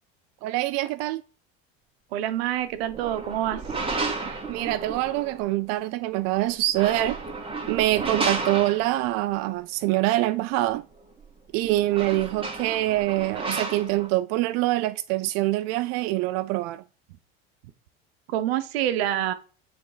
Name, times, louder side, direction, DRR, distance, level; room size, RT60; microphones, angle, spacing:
voice 1, 0.4-1.2 4.2-7.2 7.7-10.9 11.5-16.8, right 17 dB, 60° right, 0.4 m, -25 dB
voice 2, 2.1-3.6 18.3-19.3, right 12 dB, 85° right, 0.8 m, -26 dB
sound 1, 2.8-5.4 6.6-9.2 11.2-11.3 11.6-14.1, right 3 dB, 15° right, 1.8 m, -32 dB
6.9 x 3.4 x 4.9 m
supercardioid pair, 100°, 30 cm